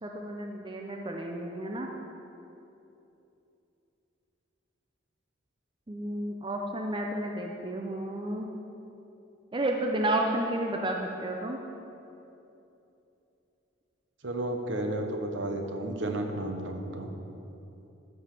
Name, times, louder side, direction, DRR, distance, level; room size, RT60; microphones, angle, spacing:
voice 1, 0.0-1.9 5.9-8.5 9.5-11.6, right 1 dB, 25° right, 1 dB, 0.6 m, -31 dB
voice 2, 14.2-17.1, right 1 dB, 65° right, 4 dB, 1.0 m, -32 dB
13.0 x 5.5 x 5.9 m, 2.9 s
head